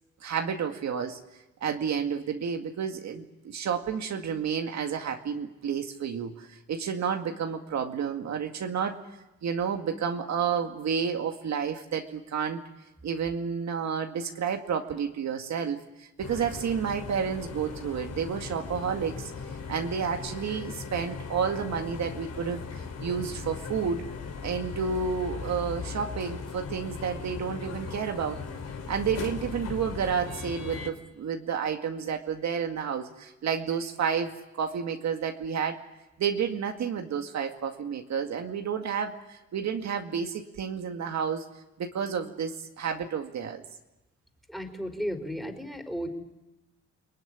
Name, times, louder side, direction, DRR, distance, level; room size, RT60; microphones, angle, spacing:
voice 1, 0.2-1.2 1.6-9.0 9.4-12.6 13.0-19.3 19.7-24.0 24.4-28.4 28.9-35.8 36.2-41.5 41.8-43.6, right 7 dB, 65° right, 4 dB, 2.1 m, -30 dB
sound 1, 16.2-30.9, left 5 dB, 55° left, 4.2 m, -38 dB
voice 2, 44.5-46.1, equal, ahead, 5 dB, 4.5 m, -34 dB
29.5 x 20.0 x 10.0 m, 1.0 s
cardioid pair, 90°, 30 cm